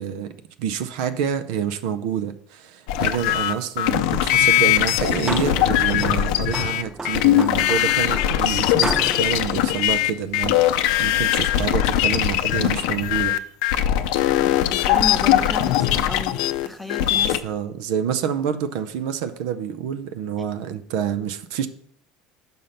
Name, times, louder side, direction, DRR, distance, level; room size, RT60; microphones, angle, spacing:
voice 1, 0.0-13.4 17.4-21.7, right 8 dB, 80° right, 10 dB, 0.5 m, -27 dB
sound 1, 2.9-17.4, left 12 dB, 80° left, 0.4 m, -20 dB
sound 2, 4.9-10.7, right 3 dB, 15° right, 0.3 m, -34 dB
voice 2, 14.4-17.4, left 2 dB, ahead, 8 dB, 0.9 m, -33 dB
5.5 x 5.1 x 5.7 m, 0.64 s
supercardioid pair, 85°, 3 cm